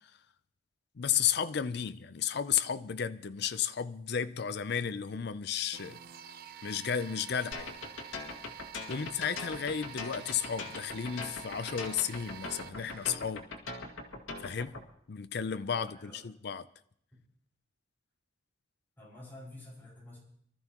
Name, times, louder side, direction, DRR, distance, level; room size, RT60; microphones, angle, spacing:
voice 1, 1.0-6.0 6.6-7.7 8.9-13.5 14.4-14.8 15.1-16.7, left 8 dB, 55° left, 0.5 m, -33 dB
sound 1, 5.7-13.1, right 10 dB, 50° right, 0.5 m, -49 dB
sound 2, 7.5-14.8, left 3 dB, 85° left, 2.0 m, -41 dB
voice 2, 15.7-16.3 17.1-17.2 19.0-20.2, left 1 dB, 10° left, 5.5 m, -50 dB
24.5 x 13.0 x 3.0 m
head